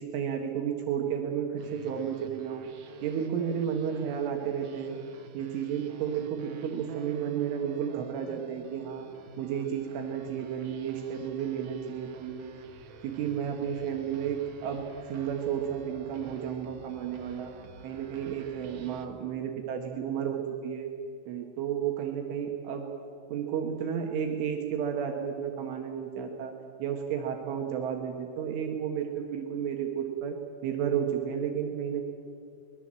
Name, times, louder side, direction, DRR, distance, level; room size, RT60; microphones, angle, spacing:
voice 1, 0.0-2.7 3.0-5.0 5.3-9.1 9.4-12.4 13.0-17.5 17.8-20.9 21.3-22.9 23.3-26.5 26.8-30.4 30.6-32.0, right 8 dB, 75° right, 2 dB, 3.8 m, -32 dB
sound 1, 1.6-19.1, right 5 dB, 90° right, 1.7 m, -49 dB
24.5 x 21.0 x 7.6 m, 2.3 s
omnidirectional pair, 6.0 m